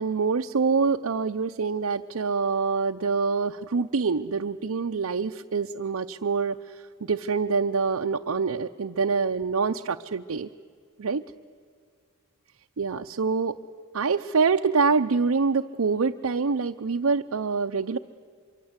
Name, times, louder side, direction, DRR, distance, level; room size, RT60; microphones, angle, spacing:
voice 1, 0.0-10.5 11.0-11.2 12.8-13.6 13.9-18.0, right 5 dB, 80° right, 5 dB, 0.6 m, -25 dB
25.5 x 24.0 x 8.1 m, 2.1 s
head